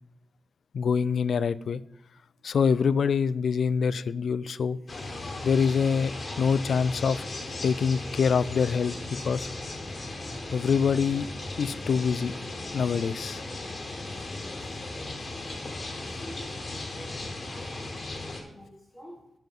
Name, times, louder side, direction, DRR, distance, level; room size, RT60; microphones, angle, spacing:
voice 1, 0.7-1.8 2.4-4.8 5.4-7.2 7.6-9.0 9.2-9.5 10.5-11.3 11.6-12.4 12.7-13.4, left 6 dB, 65° left, 0.4 m, -25 dB
sound 1, 4.9-18.4, left 2 dB, 35° left, 1.9 m, -37 dB
voice 2, 16.1-19.3, equal, 10° left, 1.6 m, -47 dB
9.0 x 6.0 x 7.4 m
wide cardioid pair, 160°, 0 cm